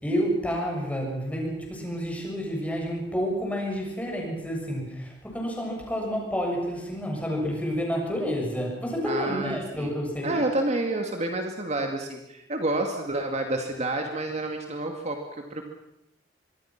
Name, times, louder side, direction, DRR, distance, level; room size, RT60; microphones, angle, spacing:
voice 1, 0.0-10.4, equal, 10° left, 0 dB, 7.1 m, -29 dB
voice 2, 9.1-9.9 10.2-15.7, right 2 dB, 40° right, 3 dB, 2.4 m, -29 dB
25.5 x 22.5 x 6.1 m, 0.83 s
head